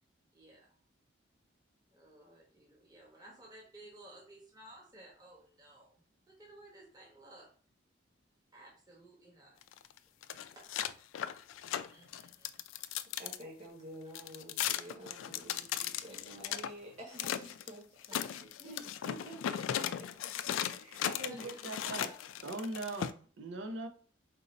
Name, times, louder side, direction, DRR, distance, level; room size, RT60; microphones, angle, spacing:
voice 1, 0.3-0.8 1.9-7.5 8.5-9.6 10.5-10.7 11.6-12.6 18.1-18.7 21.0-22.1, right 1 dB, 20° right, -3 dB, 1.1 m, -56 dB
sound 1, 9.6-13.4 14.1-16.7 17.1-17.7 18.0-23.1, left 10 dB, 85° left, 0.3 m, -37 dB
voice 2, 13.2-18.2 18.6-20.1 20.7-21.1 21.4-21.5, right 1 dB, 40° right, -3 dB, 1.4 m, -50 dB
voice 3, 21.0-22.1 22.4-23.9, right 2 dB, 70° right, 5 dB, 0.6 m, -40 dB
4.4 x 2.6 x 4.1 m, 0.42 s
head